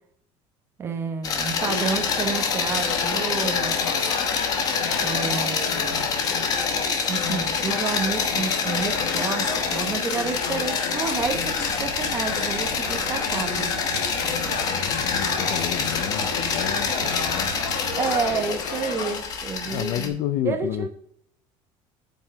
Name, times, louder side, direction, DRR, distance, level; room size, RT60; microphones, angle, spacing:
voice 1, 0.8-3.8 5.0-6.1 7.1-13.7 18.0-20.2 20.4-20.9, right 5 dB, 20° right, 5 dB, 1.0 m, -30 dB
sound 1, 1.2-20.1, left 5 dB, 30° left, 1.1 m, -27 dB
sound 2, 1.6-19.2, left 6 dB, 75° left, 1.8 m, -32 dB
sound 3, 11.2-18.4, right 10 dB, 55° right, 0.8 m, -40 dB
voice 2, 14.7-17.5 19.7-20.9, left 12 dB, 45° left, 14 dB, 0.4 m, -31 dB
7.2 x 5.5 x 6.4 m, 0.65 s
cardioid pair, 180°, 12 cm